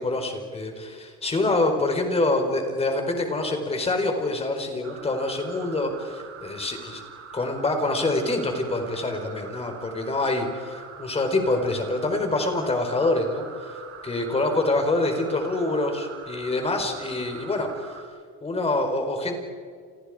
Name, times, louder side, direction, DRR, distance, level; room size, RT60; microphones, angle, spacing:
voice 1, 0.0-7.0 7.3-13.5 14.0-17.7 18.4-19.4, left 2 dB, 20° left, 5 dB, 4.6 m, -26 dB
sound 1, 4.8-18.0, right 5 dB, 40° right, 3.8 m, -43 dB
29.0 x 29.0 x 5.1 m, 2.1 s
cardioid pair, 150°, 32 cm